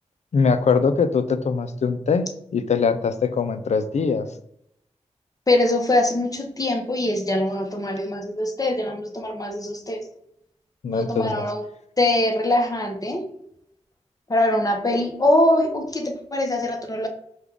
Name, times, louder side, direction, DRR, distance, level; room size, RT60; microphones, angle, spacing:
voice 1, 0.3-2.3 2.5-4.3 10.8-11.4, left 5 dB, 70° left, 11 dB, 0.4 m, -22 dB
voice 2, 5.5-10.0 10.9-11.6 12.0-13.3 14.3-17.1, left 1 dB, 30° left, 3 dB, 0.9 m, -22 dB
4.8 x 2.3 x 3.6 m, 0.73 s
cardioid pair, 40°, 12 cm